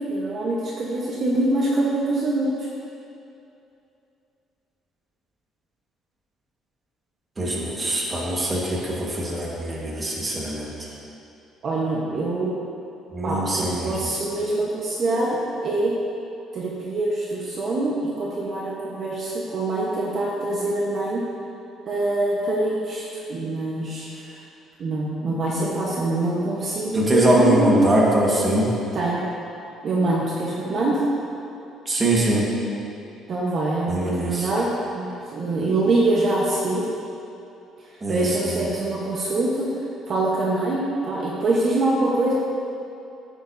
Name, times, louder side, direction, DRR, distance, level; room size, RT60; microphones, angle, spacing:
voice 1, 0.0-2.7 11.6-12.6 13.2-15.9 16.5-21.2 21.9-24.3 24.8-27.8 28.9-29.2 29.8-31.1 33.3-36.9 38.1-42.3, right 2 dB, 35° right, -5 dB, 1.1 m, -24 dB
voice 2, 7.4-10.7 13.1-13.9 26.9-28.7 31.9-32.5 33.9-34.5 38.0-38.6, right 1 dB, 15° right, -4 dB, 1.5 m, -22 dB
15.0 x 8.9 x 2.7 m, 2.7 s
cardioid pair, 175°, 0 cm